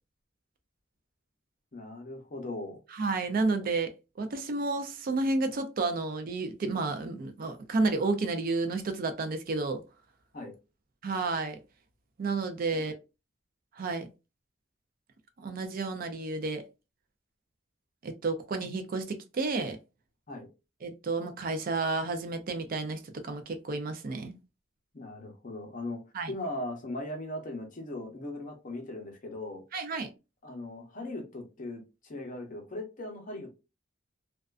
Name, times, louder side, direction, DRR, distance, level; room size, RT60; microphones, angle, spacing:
voice 1, 1.7-2.8 10.3-10.5 12.7-12.8 20.3-20.5 24.9-26.0 26.3-29.6 30.4-33.5, left 1 dB, 45° left, 0.7 m, -39 dB
voice 2, 2.9-3.9 4.2-9.8 11.0-11.6 12.2-12.9 13.8-14.1 15.4-16.7 18.0-19.8 20.8-24.3 26.1-26.3 29.7-30.1, right 3 dB, 45° right, 0.4 m, -31 dB
2.4 x 2.2 x 2.3 m
head